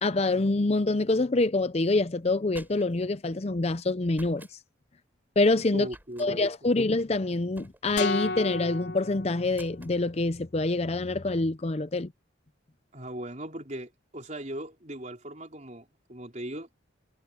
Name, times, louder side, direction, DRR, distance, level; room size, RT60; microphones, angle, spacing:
voice 1, 0.0-4.5 5.4-5.9 6.2-12.1, left 2 dB, 30° left, 0.5 m, -26 dB
sound 1, 2.2-3.1 4.1-4.6 5.9-6.3 7.5-8.1 9.5-10.0, right 1 dB, 10° right, 7.5 m, -51 dB
voice 2, 5.7-6.5 12.9-16.8, right 1 dB, 35° right, 4.4 m, -39 dB
sound 2, 8.0-10.1, left 3 dB, 65° left, 5.1 m, -33 dB
head